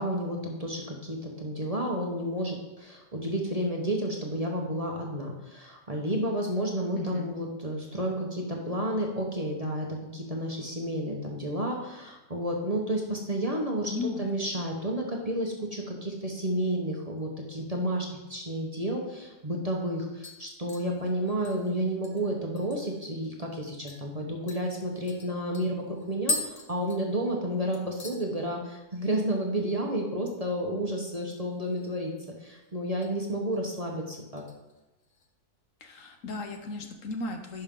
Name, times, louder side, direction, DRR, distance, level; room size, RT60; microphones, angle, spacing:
voice 1, 0.0-32.1 32.4-34.4, right 1 dB, 30° right, 0 dB, 1.0 m, -31 dB
voice 2, 6.9-7.3 13.8-14.4 35.8-37.6, left 3 dB, 65° left, 5 dB, 1.0 m, -35 dB
sound 1, 19.1-19.2 19.6-19.9 20.2-23.1 23.4-23.5 23.9-24.0 24.5-27.5 27.7-28.2 28.6-29.0 29.2-29.3 31.4-32.1 32.4-33.1 33.5-33.8 34.4-35.3 35.6-35.7, left 2 dB, 40° left, 1.1 m, -39 dB
10.5 x 5.6 x 3.7 m, 1.0 s
omnidirectional pair, 1.6 m